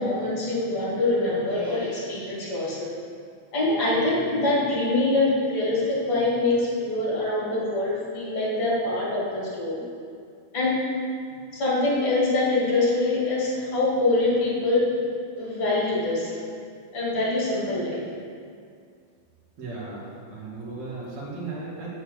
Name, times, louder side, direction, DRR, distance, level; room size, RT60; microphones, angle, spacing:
voice 1, 0.0-2.9 3.5-9.9 10.5-10.8 11.5-14.9 15.3-16.4 16.9-18.0, left 2 dB, 40° left, -7 dB, 3.0 m, -24 dB
voice 2, 19.6-21.9, right 3 dB, 50° right, -6 dB, 2.6 m, -36 dB
7.1 x 6.7 x 6.6 m, 2.2 s
omnidirectional pair, 4.8 m